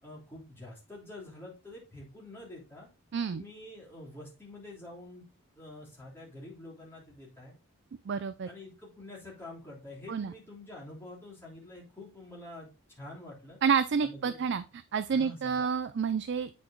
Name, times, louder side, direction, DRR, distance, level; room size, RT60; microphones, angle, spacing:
voice 1, 0.0-2.9 3.3-5.2 5.5-7.5 8.5-12.7 13.0-13.6 14.0-14.5 15.1-15.7, left 1 dB, 10° left, -6 dB, 3.2 m, -47 dB
voice 2, 3.1-3.4 8.1-8.5 10.1-10.3 13.6-16.5, right 6 dB, 55° right, 12 dB, 0.4 m, -29 dB
8.4 x 4.5 x 3.8 m, 0.30 s
head